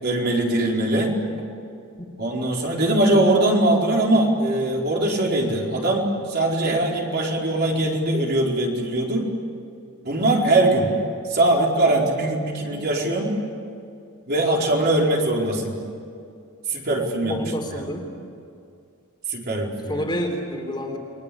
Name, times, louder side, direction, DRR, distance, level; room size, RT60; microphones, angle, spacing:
voice 1, 0.0-1.1 2.2-9.3 10.0-10.9 11.3-13.3 14.3-15.8 16.7-17.4 19.3-20.0, right 1 dB, 50° right, -1 dB, 4.4 m, -21 dB
voice 2, 17.3-18.1 19.9-21.0, equal, 20° left, 2 dB, 3.6 m, -28 dB
29.5 x 22.5 x 8.6 m, 2.4 s
head